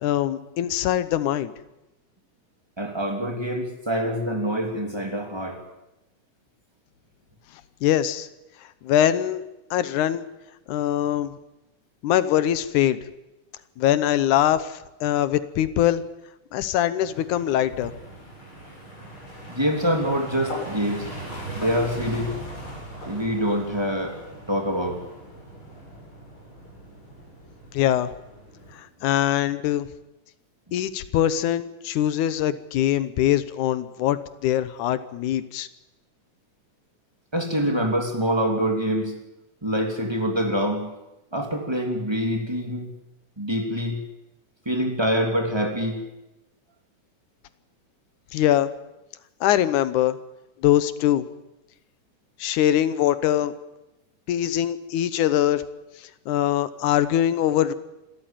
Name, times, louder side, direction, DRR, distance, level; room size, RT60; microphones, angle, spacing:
voice 1, 0.0-1.5 7.8-8.3 8.8-9.4 9.7-10.2 10.7-11.4 12.0-13.0 13.8-16.0 16.5-17.9 27.7-28.1 28.7-29.9 30.7-35.7 48.3-48.7 49.4-50.2 50.6-51.2 52.4-53.5 54.3-55.6 56.3-57.7, left 11 dB, 80° left, 14 dB, 2.4 m, -22 dB
voice 2, 2.8-5.6 19.5-21.1 21.5-22.3 23.1-24.2 24.5-25.0 37.3-39.1 39.6-40.9 41.3-42.9 43.4-44.0 44.6-46.0, equal, 10° right, 3 dB, 2.8 m, -25 dB
sound 1, 17.0-28.8, right 1 dB, 40° left, 8.9 m, -39 dB
26.0 x 13.5 x 9.0 m, 0.96 s
omnidirectional pair, 3.6 m